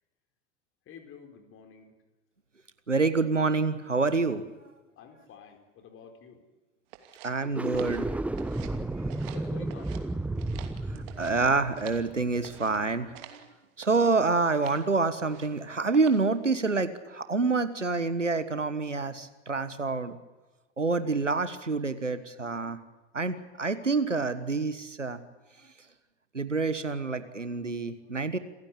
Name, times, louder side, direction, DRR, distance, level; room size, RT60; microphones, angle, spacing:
voice 1, 0.9-1.9 5.0-6.4 9.3-10.0, left 7 dB, 35° left, 5 dB, 4.4 m, -49 dB
voice 2, 2.9-4.4 7.2-8.2 8.7-9.1 10.9-13.4 13.8-20.2 20.8-22.8 23.1-25.2 26.3-28.4, right 3 dB, 85° right, 13 dB, 1.5 m, -27 dB
sound 1, 6.9-8.8 9.1-10.0 10.4-12.1 12.4-12.8 13.1-13.5 13.8-14.1 14.5-14.9 15.2-15.6 15.9-16.3, right 12 dB, 50° right, 2.8 m, -48 dB
sound 2, 7.4-12.7, right 2 dB, 5° right, 0.8 m, -33 dB
28.0 x 15.5 x 8.5 m, 1.2 s
figure-of-eight pair, 80°, 36 cm